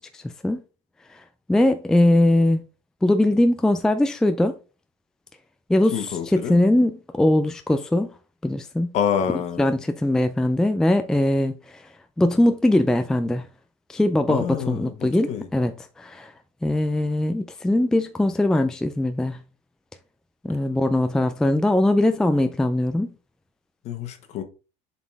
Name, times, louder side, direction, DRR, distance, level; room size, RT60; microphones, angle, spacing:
voice 1, 0.1-0.6 1.1-1.2 1.5-2.6 3.0-4.5 5.7-8.1 8.4-8.9 9.6-11.9 12.2-13.5 13.9-16.3 16.6-19.4 20.4-23.1, left 1 dB, 5° left, 0.4 m, -21 dB
voice 2, 5.9-6.6 8.9-9.7 14.3-15.5 23.8-24.4, left 8 dB, 45° left, 1.3 m, -27 dB
7.2 x 4.1 x 3.4 m
cardioid pair, 140°, 15 cm